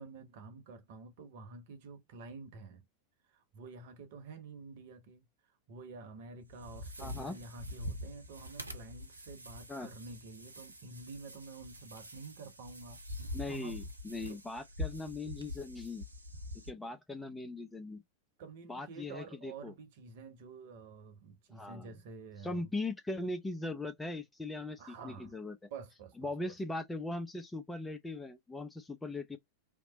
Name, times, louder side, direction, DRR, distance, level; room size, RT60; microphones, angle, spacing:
voice 1, 0.0-2.8 3.3-5.3 5.7-13.8 14.3-14.4 18.4-22.7 24.8-25.3 25.7-26.5, right 4 dB, 50° right, 1.0 m, -49 dB
sound 1, 6.4-16.7, left 1 dB, 80° right, 0.5 m, -45 dB
voice 2, 7.0-7.4 9.7-9.9 13.3-16.0 16.5-18.0 18.7-19.7 21.5-21.9 22.4-25.6 26.2-29.4, left 2 dB, 10° left, 0.5 m, -40 dB
2.9 x 2.0 x 3.9 m
figure-of-eight pair, 90°, 0 cm